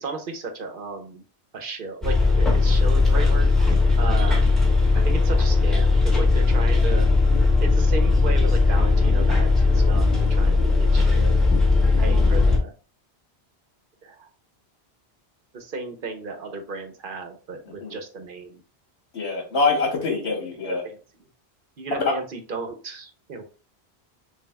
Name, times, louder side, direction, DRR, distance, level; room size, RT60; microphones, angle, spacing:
voice 1, 0.0-1.2 1.5-4.5 4.9-7.1 7.6-11.4 11.9-12.7 14.0-14.3 15.5-18.6 20.2-21.0 21.8-23.4, right 4 dB, 55° right, 5 dB, 0.9 m, -34 dB
Bus, 2.0-12.6, left 3 dB, ahead, 1.1 m, -18 dB
voice 2, 19.1-20.8 22.0-22.1, left 3 dB, 75° left, 1 dB, 1.2 m, -24 dB
6.9 x 2.4 x 2.2 m, 0.36 s
omnidirectional pair, 1.1 m